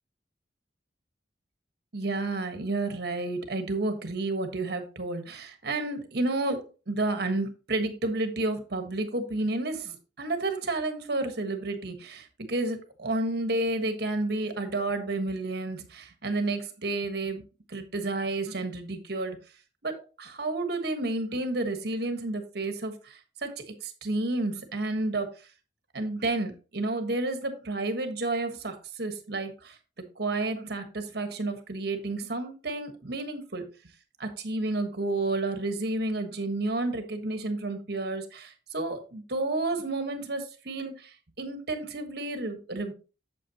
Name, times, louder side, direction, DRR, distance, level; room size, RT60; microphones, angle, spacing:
voice 1, 1.9-17.4 17.7-19.4 19.8-25.3 25.9-29.7 30.2-33.6 34.2-42.9, right 2 dB, 60° right, 7 dB, 1.4 m, -31 dB
8.4 x 7.7 x 2.9 m, 0.34 s
head